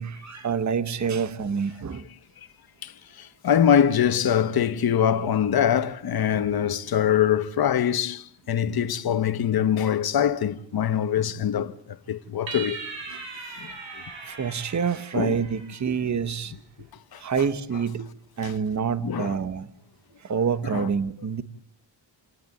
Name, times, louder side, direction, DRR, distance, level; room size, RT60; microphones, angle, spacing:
voice 1, 0.0-2.1 13.1-13.2 14.2-16.5 17.2-18.1 18.4-19.7 20.2-21.4, right 6 dB, 40° right, 1.3 m, -27 dB
voice 2, 2.8-11.7 12.1-12.8 13.6-13.7 15.1-15.4 17.1-17.2 18.4-18.5 19.0-19.3 20.7-20.9, left 9 dB, 50° left, 1.2 m, -23 dB
sound 1, 12.5-16.0, right 4 dB, 70° right, 7.4 m, -39 dB
29.0 x 19.0 x 8.5 m
wide cardioid pair, 150°, 46 cm